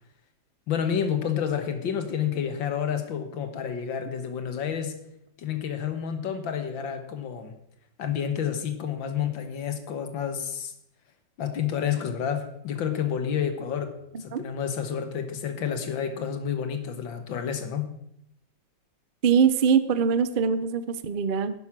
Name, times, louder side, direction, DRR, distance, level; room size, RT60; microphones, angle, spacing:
voice 1, 0.7-5.0 5.4-7.5 8.0-10.7 11.4-13.9 14.2-17.9, left 8 dB, 80° left, 8 dB, 2.0 m, -29 dB
voice 2, 19.2-21.5, right 6 dB, 70° right, 13 dB, 0.4 m, -22 dB
11.0 x 9.4 x 6.1 m, 0.76 s
omnidirectional pair, 2.1 m